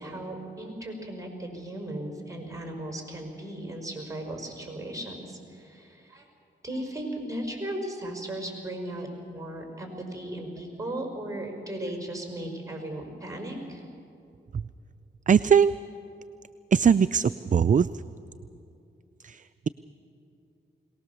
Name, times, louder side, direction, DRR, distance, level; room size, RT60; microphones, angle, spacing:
voice 1, 0.0-6.2 6.6-13.8, right 1 dB, 15° right, 3 dB, 5.1 m, -36 dB
voice 2, 15.3-15.7 16.7-18.0 19.2-19.7, right 7 dB, 40° right, 15 dB, 0.4 m, -21 dB
22.5 x 18.5 x 7.0 m, 2.6 s
cardioid pair, 55°, 20 cm